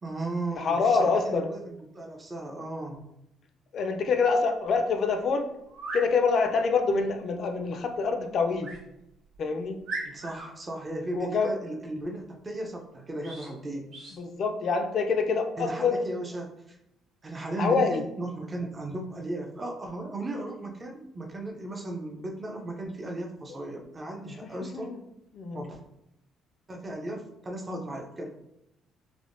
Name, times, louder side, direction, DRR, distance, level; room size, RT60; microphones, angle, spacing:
voice 1, 0.0-3.1 10.0-13.9 15.6-16.8 17.2-24.9 25.5-25.8 26.7-28.3, right 2 dB, 25° right, 2 dB, 0.5 m, -36 dB
voice 2, 0.5-1.5 3.7-5.5 5.9-8.7 9.4-9.8 11.1-11.5 14.1-16.0 17.6-18.0 24.2-25.0 25.3-25.6, left 4 dB, 55° left, 6 dB, 0.3 m, -26 dB
sound 1, 4.8-4.9 5.7-6.1 8.6-8.8 9.3-9.4 9.8-10.5 13.2-13.5 13.9-14.2, right 2 dB, 75° right, 1.4 m, -37 dB
3.4 x 2.1 x 2.5 m, 0.84 s
cardioid pair, 100°, 0 cm